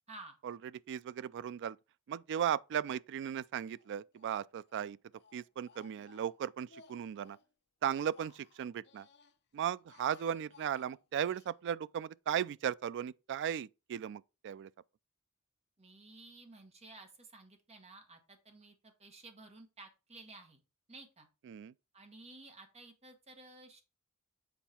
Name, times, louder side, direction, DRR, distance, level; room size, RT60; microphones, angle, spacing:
voice 1, 0.9-1.8 2.1-5.0 5.3-7.4 7.8-9.1 9.5-14.7 21.5-21.7, right 9 dB, 55° right, 0.3 m, -36 dB
Speech, 3.7-4.4 4.7-7.5 7.9-9.4 9.7-11.5, left 6 dB, 50° left, 0.8 m, -61 dB
voice 2, 15.8-20.6 20.9-21.3 21.9-23.8, right 2 dB, 30° right, 1.5 m, -54 dB
7.2 x 4.5 x 4.3 m
head